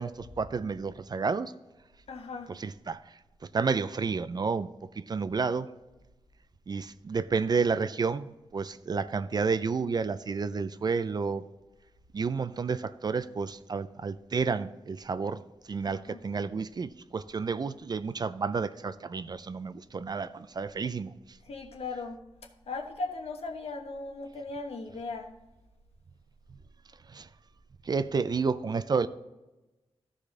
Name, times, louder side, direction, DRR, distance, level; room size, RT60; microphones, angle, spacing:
voice 1, 0.0-1.5 2.5-3.0 3.5-4.7 5.0-5.7 6.7-11.4 12.1-15.4 15.7-21.1 27.1-27.3 27.9-29.1, right 5 dB, 40° right, 13 dB, 0.4 m, -30 dB
voice 2, 2.1-2.5 15.9-16.2 21.4-22.2 22.7-25.3, left 3 dB, 75° left, 3 dB, 1.2 m, -37 dB
13.5 x 5.0 x 3.6 m, 1.1 s
wide cardioid pair, 130°, 11 cm